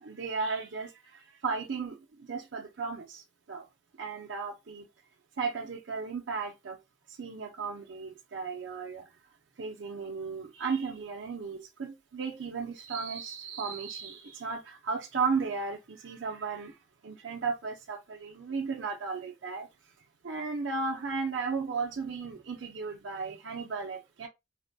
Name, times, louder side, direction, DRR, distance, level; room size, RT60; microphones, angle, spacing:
voice 1, 0.0-3.7 4.0-4.9 5.4-6.8 7.1-9.1 9.6-16.8 17.0-19.7 20.2-24.3, right 4 dB, 75° right, 0.6 m, -35 dB
4.1 x 2.2 x 2.6 m
head